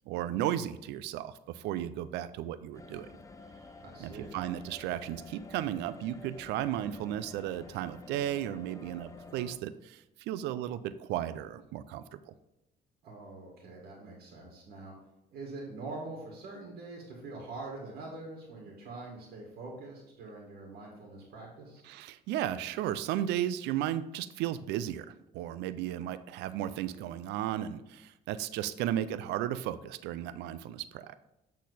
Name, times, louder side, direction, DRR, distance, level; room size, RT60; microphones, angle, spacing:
voice 1, 0.1-3.1 4.0-12.3 21.8-25.1 25.3-31.1, right 11 dB, 85° right, 14 dB, 0.4 m, -34 dB
sound 1, 2.7-9.6, left 3 dB, 20° left, 0.6 m, -50 dB
voice 2, 3.8-4.4 13.0-14.9 15.3-21.8, right 3 dB, 65° right, -1 dB, 2.0 m, -44 dB
8.3 x 4.1 x 4.1 m, 0.91 s
cardioid pair, 110°, 17 cm